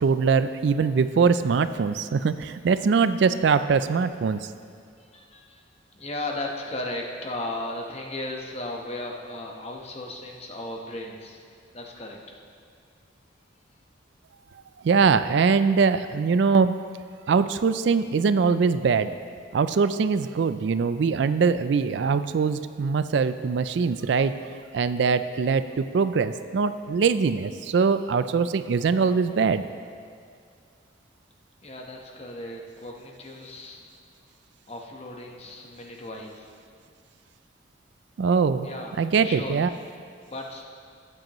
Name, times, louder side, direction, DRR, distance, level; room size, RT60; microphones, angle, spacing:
voice 1, 0.0-4.5 14.8-16.8 17.3-19.1 19.5-24.3 24.7-29.6 38.2-38.7 39.0-39.7, right 5 dB, 60° right, 12 dB, 0.3 m, -22 dB
voice 2, 5.0-5.6 5.9-11.4 11.7-12.2 31.6-33.9 34.7-36.5 38.6-38.9 39.2-39.6 40.3-40.6, left 1 dB, 35° left, 0 dB, 1.1 m, -36 dB
19.0 x 7.7 x 3.0 m, 2.2 s
head